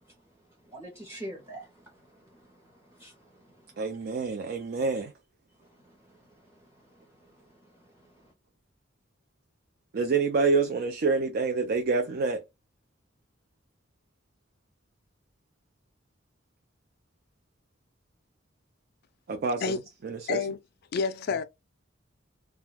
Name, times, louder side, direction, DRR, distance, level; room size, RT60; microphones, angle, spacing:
voice 1, 0.7-3.4 6.1-6.2 7.3-7.4, right 1 dB, 15° right, 0.6 m, -45 dB
voice 2, 3.8-5.1 9.9-12.4 19.3-20.5, right 4 dB, 50° right, 0.4 m, -27 dB
voice 3, 20.3-20.6 20.9-21.4, left 5 dB, 55° left, 0.3 m, -28 dB
2.3 x 2.1 x 3.2 m
head